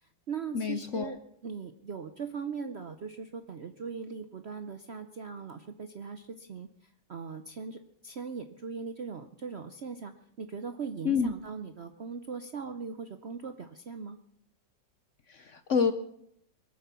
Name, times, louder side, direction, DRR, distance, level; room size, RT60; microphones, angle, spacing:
voice 1, 0.0-6.7 7.1-14.2, right 5 dB, 60° right, 9 dB, 0.7 m, -40 dB
voice 2, 0.5-1.1 11.0-11.3 15.3-15.9, left 6 dB, 60° left, 10 dB, 0.8 m, -28 dB
22.0 x 8.9 x 6.9 m, 0.74 s
omnidirectional pair, 2.0 m